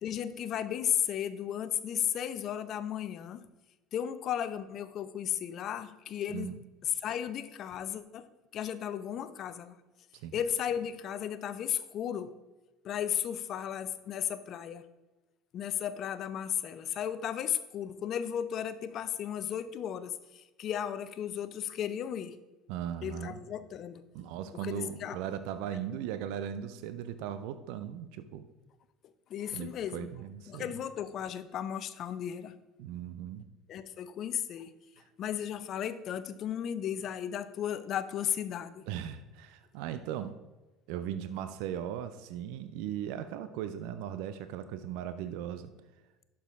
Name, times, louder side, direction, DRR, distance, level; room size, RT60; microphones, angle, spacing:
voice 1, 0.0-3.4 3.9-6.5 7.0-8.3 8.5-9.8 10.3-12.3 12.8-14.8 15.5-22.4 23.0-24.0 24.5-25.2 29.3-30.1 30.5-32.5 33.7-34.7 35.2-38.8, left 9 dB, 50° left, 13 dB, 0.6 m, -35 dB
voice 2, 22.7-23.4 24.1-28.4 29.5-30.8 32.8-33.5 35.0-35.1 38.9-40.4 40.9-45.7, right 9 dB, 65° right, 11 dB, 0.5 m, -38 dB
11.5 x 4.8 x 3.6 m, 1.1 s
hypercardioid pair, 65°, 0 cm